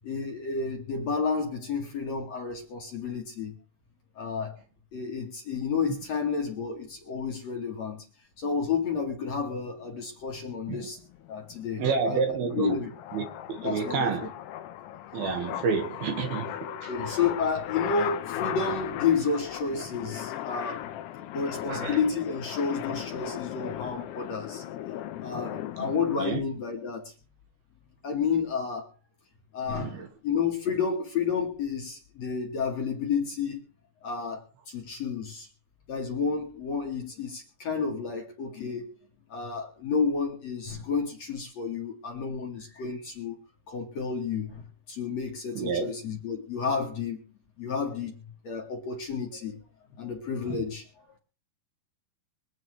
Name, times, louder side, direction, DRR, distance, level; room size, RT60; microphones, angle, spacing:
voice 1, 0.0-3.5 4.2-4.6 4.9-8.0 8.4-11.0 11.3-12.9 13.6-14.3 16.7-20.9 21.2-24.6 25.2-27.1 28.0-28.9 29.5-33.6 34.0-35.5 35.9-38.9 39.3-43.4 43.7-47.3 47.6-48.1 48.4-49.6 50.0-51.2, left 5 dB, 55° left, 2.3 m, -31 dB
sound 1, 11.0-26.3, left 12 dB, 85° left, 2.9 m, -37 dB
voice 2, 11.8-12.7 13.1-13.3 13.6-14.3 15.1-16.9 21.7-22.0 25.8-25.9 26.2-26.4 29.8-30.1 45.5-45.9, right 5 dB, 70° right, 3.4 m, -29 dB
25.0 x 8.5 x 3.2 m
omnidirectional pair, 4.6 m